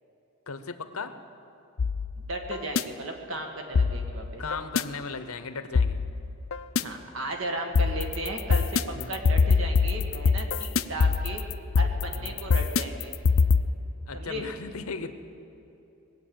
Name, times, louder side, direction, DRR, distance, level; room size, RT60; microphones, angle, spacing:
voice 1, 0.5-1.2 4.4-6.0 8.9-9.2 12.1-12.4 14.1-15.1, left 4 dB, 85° left, 10 dB, 0.9 m, -37 dB
sound 1, 1.8-2.8 3.7-4.8 5.7-6.8 7.7-13.6, left 5 dB, 65° left, 0.5 m, -24 dB
voice 2, 2.2-4.4 6.8-8.8 9.1-11.4 11.7-13.1 14.1-14.5, right 1 dB, 65° right, 3 dB, 1.9 m, -35 dB
20.5 x 8.0 x 8.9 m, 2.9 s
head